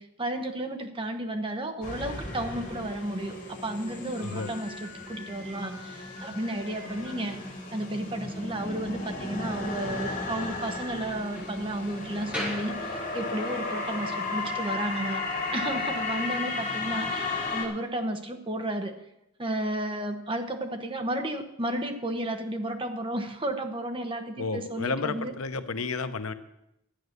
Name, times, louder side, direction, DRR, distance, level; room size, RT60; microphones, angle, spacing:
voice 1, 0.0-7.4 7.7-15.2 15.5-19.0 19.4-25.3, right 1 dB, 25° right, 6 dB, 1.0 m, -33 dB
sound 1, 1.8-17.7, left 3 dB, 40° left, 3.3 m, -34 dB
Slam, 4.1-13.5, left 1 dB, 5° right, 5.7 m, -44 dB
voice 2, 4.2-4.5 24.4-26.3, left 4 dB, 90° left, 10 dB, 0.9 m, -31 dB
12.0 x 9.3 x 6.6 m, 0.84 s
head